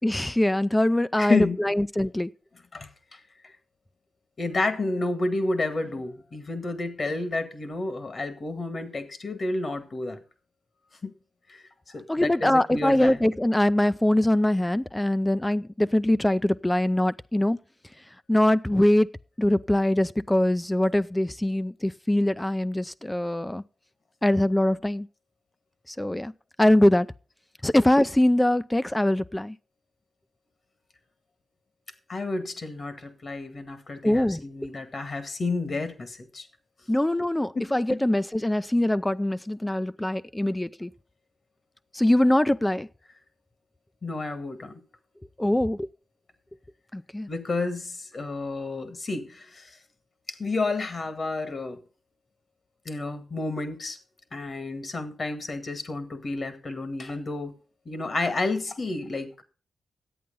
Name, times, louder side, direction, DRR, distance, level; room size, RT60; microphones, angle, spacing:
voice 1, 0.0-2.3 12.1-17.6 18.3-19.1 19.4-23.6 24.2-25.1 25.9-26.3 26.6-27.1 27.6-29.6 34.0-34.4 36.9-40.9 41.9-42.9 45.4-45.9 46.9-47.3, left 1 dB, 15° left, 0.4 m, -23 dB
voice 2, 1.2-1.6 2.7-3.2 4.4-10.2 11.0-11.1 11.5-13.2 32.1-36.5 37.6-37.7 44.0-44.7 47.3-49.7 50.3-51.8 52.9-54.0 54.3-57.6 57.9-59.4, left 3 dB, 50° left, 1.9 m, -30 dB
11.0 x 8.4 x 5.4 m
cardioid pair, 60°, 0 cm